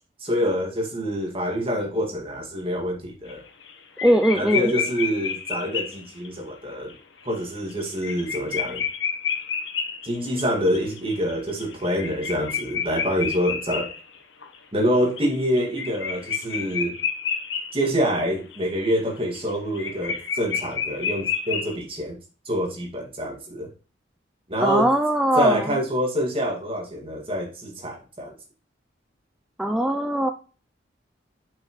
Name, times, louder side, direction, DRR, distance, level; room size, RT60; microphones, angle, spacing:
voice 1, 0.2-3.4 4.3-6.9 7.2-8.8 10.0-13.9 14.7-17.0 17.7-22.2 22.5-23.7 24.5-24.9 25.4-28.3, equal, 30° right, 0 dB, 2.0 m, -26 dB
sound 1, 3.3-3.7 4.0-6.3 6.9-7.0 7.3-7.4 7.7-14.6 14.9-17.8 18.1-18.2 18.5-21.8, left 7 dB, 85° left, 1.0 m, -30 dB
voice 2, 4.0-4.7 24.6-25.8 29.6-30.3, equal, 5° right, 5 dB, 0.3 m, -21 dB
6.5 x 5.7 x 3.1 m, 0.36 s
head